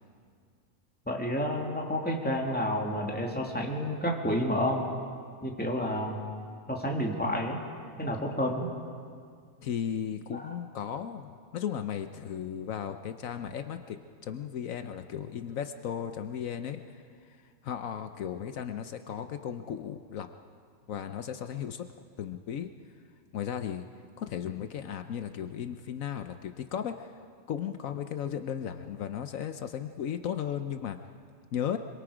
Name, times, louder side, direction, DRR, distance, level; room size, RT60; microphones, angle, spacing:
voice 1, 1.1-4.9 5.4-6.2 6.7-7.6 8.0-8.7 10.3-10.5, equal, 5° left, -1 dB, 2.3 m, -30 dB
voice 2, 9.6-14.0 14.2-16.8 17.6-20.3 20.9-21.8 22.2-22.7 23.3-23.8 24.2-27.1 27.5-31.0 31.5-31.8, left 9 dB, 75° left, 8 dB, 1.2 m, -35 dB
26.5 x 23.5 x 5.0 m, 2.1 s
omnidirectional pair, 1.4 m